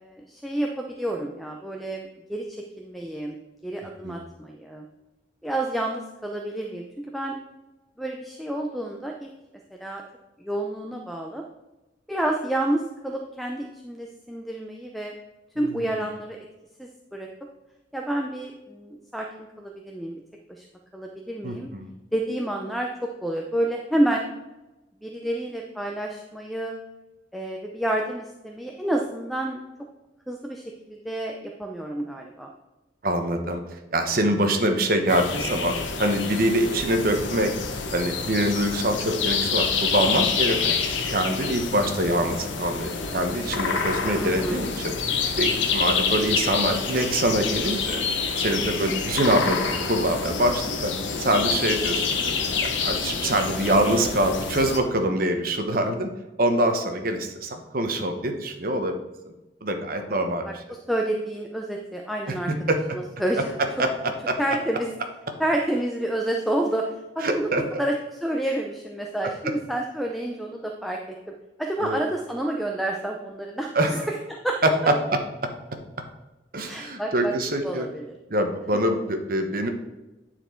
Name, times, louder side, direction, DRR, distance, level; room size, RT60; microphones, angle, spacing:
voice 1, 0.0-3.3 3.6-4.9 5.4-7.4 8.0-9.3 9.7-10.0 10.4-11.4 12.1-15.1 15.6-16.4 16.8-17.3 17.9-20.2 20.5-20.7 20.9-21.7 22.1-24.3 25.0-26.7 27.3-29.6 30.3-30.6 30.9-32.5 44.2-44.6 60.5-60.6 60.9-63.6 64.4-64.9 65.4-71.0 71.6-74.0 74.3-74.6 76.7-77.3 77.6-78.2, right 1 dB, ahead, 1 dB, 0.5 m, -29 dB
voice 2, 21.4-21.9 33.0-35.7 36.0-37.5 37.9-40.7 41.1-44.9 45.4-48.0 48.4-50.9 51.2-52.1 52.8-56.1 56.4-59.0 59.6-60.6 62.3-62.4 62.7-63.0 63.8-63.9 64.3-64.4 67.2-67.8 69.4-69.5 71.8-72.0 73.7-74.1 76.5-77.9 78.3-79.7, right 1 dB, 50° right, 5 dB, 0.9 m, -24 dB
sound 1, 35.1-54.8, left 5 dB, 90° left, 0.9 m, -27 dB
9.4 x 4.4 x 4.4 m, 1.1 s
head